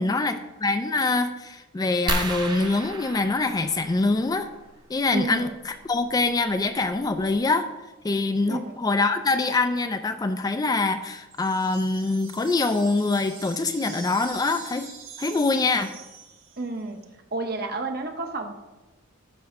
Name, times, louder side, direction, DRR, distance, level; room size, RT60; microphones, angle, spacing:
voice 1, 0.0-4.5 4.9-7.7 8.0-14.9 15.2-15.9, left 3 dB, 20° left, 9 dB, 0.3 m, -24 dB
sound 1, 2.1-4.5 6.1-6.2 6.8-6.9 7.2-7.4, right 2 dB, 20° right, 0.7 m, -32 dB
voice 2, 5.1-5.5 8.5-8.8 16.6-17.0 17.3-18.6, right 2 dB, 50° right, 5 dB, 0.9 m, -31 dB
sound 2, 11.3-16.8, right 5 dB, 90° right, 2.2 m, -44 dB
9.4 x 3.5 x 6.4 m, 1.1 s
head